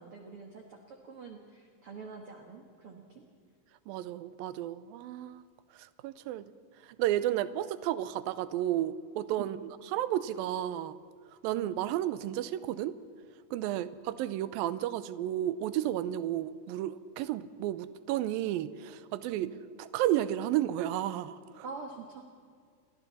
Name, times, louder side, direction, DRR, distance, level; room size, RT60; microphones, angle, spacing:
voice 1, 0.0-3.3 9.4-9.6 11.6-11.8 13.7-13.9 19.4-19.5 21.6-22.2, right 5 dB, 50° right, 2 dB, 1.9 m, -45 dB
voice 2, 3.9-5.4 6.0-6.4 7.0-9.6 9.9-11.0 11.4-12.9 13.5-19.5 19.8-21.6, right 12 dB, 75° right, 14 dB, 2.4 m, -32 dB
30.0 x 22.0 x 4.2 m, 2.1 s
omnidirectional pair, 4.4 m